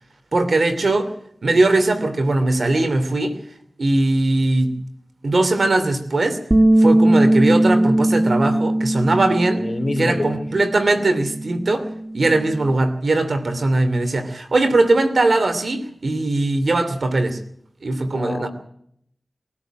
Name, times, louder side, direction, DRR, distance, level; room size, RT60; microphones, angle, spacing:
voice 1, 0.3-1.1 1.4-3.3 3.8-4.7 5.2-6.4 6.8-9.6 10.0-11.9 12.1-17.4 17.8-18.5, right 2 dB, 75° right, 2.7 m, -20 dB
Bass guitar, 6.5-10.8 11.1-12.7, right 1 dB, 35° right, 1.6 m, -19 dB
voice 2, 9.5-10.4 18.0-18.5, left 2 dB, 45° left, 2.9 m, -26 dB
23.0 x 13.5 x 9.1 m
cardioid pair, 40°, 0 cm